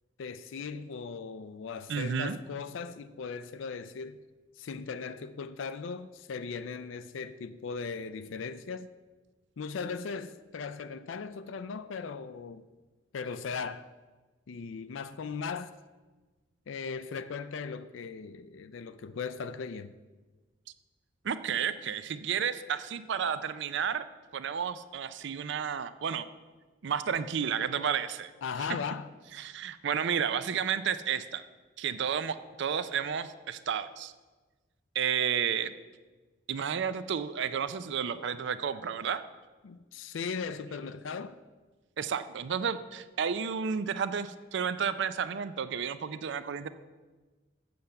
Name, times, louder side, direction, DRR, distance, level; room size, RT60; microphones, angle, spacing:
voice 1, 0.2-4.2 4.6-8.9 9.6-12.7 13.1-13.9 14.5-15.8 16.7-19.9 28.4-29.1 39.6-41.4, left 5 dB, 85° left, 0.4 m, -38 dB
voice 2, 1.9-2.4 21.2-24.0 24.3-26.2 26.8-28.3 29.4-31.4 31.8-34.1 35.0-35.7 36.5-39.2 42.0-46.7, right 7 dB, 65° right, 0.5 m, -31 dB
7.7 x 7.0 x 6.5 m
head